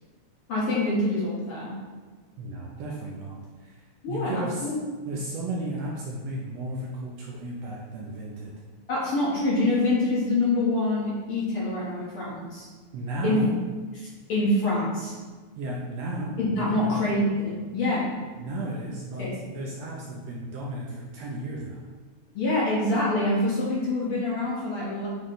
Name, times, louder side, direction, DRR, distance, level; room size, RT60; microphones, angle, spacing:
voice 1, 0.5-1.7 4.0-4.7 8.9-12.7 13.2-13.4 14.0-15.1 16.4-18.1 19.2-19.4 22.3-25.1, left 2 dB, 55° left, -6 dB, 1.8 m, -26 dB
voice 2, 2.4-3.8 4.1-4.7 5.1-8.5 12.9-13.5 15.6-17.0 18.4-21.8, right 1 dB, 70° right, -3 dB, 1.6 m, -34 dB
8.3 x 3.2 x 3.9 m, 1.4 s
omnidirectional pair, 3.5 m